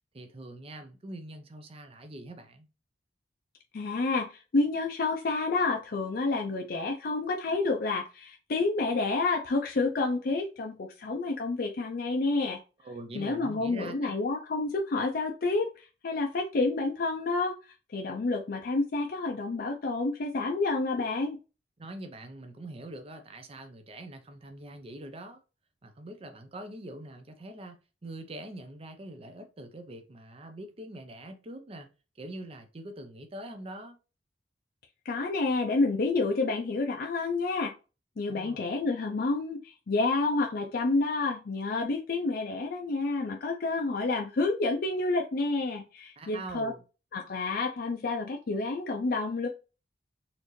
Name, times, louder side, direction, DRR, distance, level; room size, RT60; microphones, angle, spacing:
voice 1, 0.1-2.7 12.8-14.2 21.8-25.4 25.8-27.8 28.0-31.9 32.2-34.0 38.3-38.7 46.2-46.8, right 1 dB, 35° right, 0.6 m, -43 dB
voice 2, 3.7-12.6 13.1-17.5 17.9-21.4 35.1-37.7 38.2-46.7 47.1-49.5, left 3 dB, 55° left, 0.5 m, -29 dB
4.2 x 2.6 x 3.1 m
head